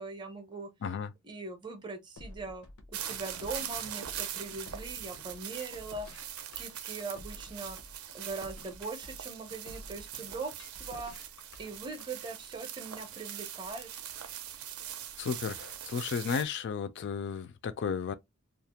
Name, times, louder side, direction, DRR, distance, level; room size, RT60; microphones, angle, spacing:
voice 1, 0.0-0.7 1.2-6.3 6.6-7.8 8.1-11.1 11.6-13.9, right 3 dB, 20° right, 0.5 m, -41 dB
voice 2, 0.8-1.1 15.2-18.1, left 6 dB, 50° left, 0.3 m, -33 dB
sound 1, 2.2-12.1, left 1 dB, 85° left, 0.7 m, -50 dB
sound 2, 2.9-16.4, right 10 dB, 80° right, 0.5 m, -42 dB
2.4 x 2.0 x 2.7 m
head